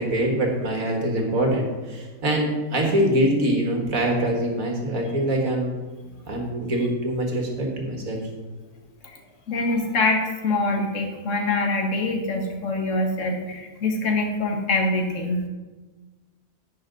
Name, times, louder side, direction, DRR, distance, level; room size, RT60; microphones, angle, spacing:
voice 1, 0.0-5.7 6.3-8.2, right 1 dB, 60° right, 1 dB, 2.1 m, -24 dB
voice 2, 9.5-15.5, left 2 dB, 55° left, 3 dB, 1.8 m, -24 dB
11.0 x 9.4 x 3.9 m, 1.2 s
omnidirectional pair, 1.6 m